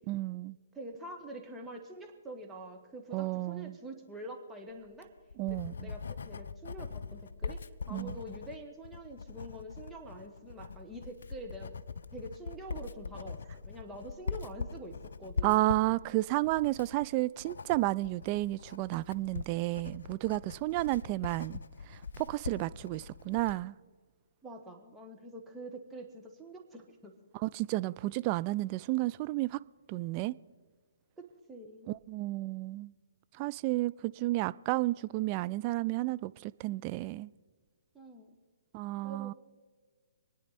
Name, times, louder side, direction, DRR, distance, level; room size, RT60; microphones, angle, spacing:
voice 1, 0.1-0.6 3.1-3.8 5.4-5.9 7.9-8.2 15.4-21.6 21.9-23.8 27.3-29.6 29.9-30.3 31.9-32.9 33.4-37.3 38.7-39.3, right 18 dB, 30° right, 0.3 m, -32 dB
voice 2, 0.7-5.1 5.5-7.6 7.9-11.7 12.1-15.7 24.4-27.1 31.2-31.9 37.9-38.4 39.0-39.3, right 1 dB, 10° right, 1.4 m, -46 dB
Writing, 4.8-23.6, left 5 dB, 60° left, 0.5 m, -42 dB
26.0 x 9.8 x 4.2 m
figure-of-eight pair, 125°, 0 cm